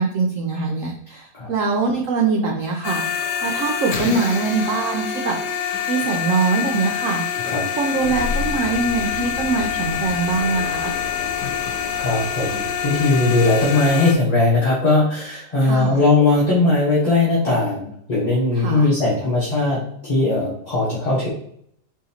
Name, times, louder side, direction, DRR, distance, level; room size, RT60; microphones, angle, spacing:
voice 1, 0.0-3.1 3.4-5.4 5.9-7.2 7.8-10.9 15.6-16.1 18.5-18.9, right 4 dB, 65° right, 1 dB, 0.8 m, -23 dB
sound 1, 2.8-14.1, left 8 dB, 80° left, 1.3 m, -26 dB
sound 2, 7.9-13.9, left 2 dB, 60° left, 1.2 m, -33 dB
voice 2, 12.0-21.3, left 2 dB, 30° left, -7 dB, 1.1 m, -19 dB
4.8 x 3.9 x 2.8 m, 0.68 s
omnidirectional pair, 1.8 m